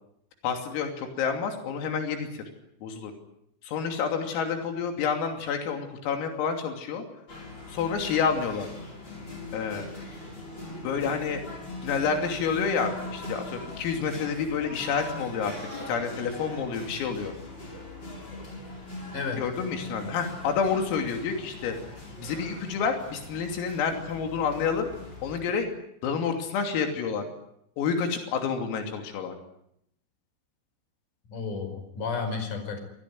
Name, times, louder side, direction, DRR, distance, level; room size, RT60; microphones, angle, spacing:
voice 1, 0.4-2.4 2.8-3.1 3.6-7.0 7.7-8.7 9.5-9.9 10.8-11.4 11.8-15.5 15.9-17.3 19.4-21.8 22.2-24.9 25.2-25.7 26.0-27.2 27.8-29.3, left 6 dB, 85° left, 4 dB, 5.5 m, -29 dB
sound 1, 7.3-25.4, left 2 dB, 20° left, 7.4 m, -41 dB
voice 2, 19.1-19.4 31.3-32.8, left 4 dB, 40° left, 7 dB, 6.2 m, -32 dB
27.0 x 18.5 x 9.5 m, 0.77 s
omnidirectional pair, 5.9 m